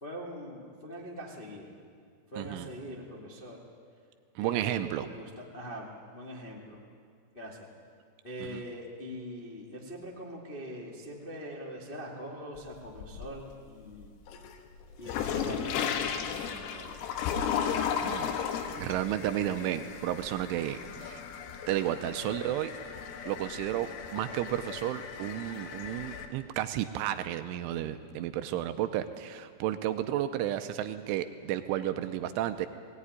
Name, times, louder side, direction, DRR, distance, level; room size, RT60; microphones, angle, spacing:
voice 1, 0.0-1.6 2.3-3.6 4.4-6.8 7.3-7.7 8.2-14.1 15.0-17.1, equal, 65° left, -3 dB, 0.5 m, -42 dB
voice 2, 2.4-2.7 4.4-5.1 8.4-8.6 18.0-18.3 18.8-21.2 21.7-22.7 23.3-32.7, right 12 dB, 80° right, 9 dB, 3.0 m, -32 dB
sound 1, 12.6-13.5 13.9-26.3, left 8 dB, 90° left, 4.1 m, -35 dB
20.0 x 18.0 x 9.7 m, 2.2 s
omnidirectional pair, 5.9 m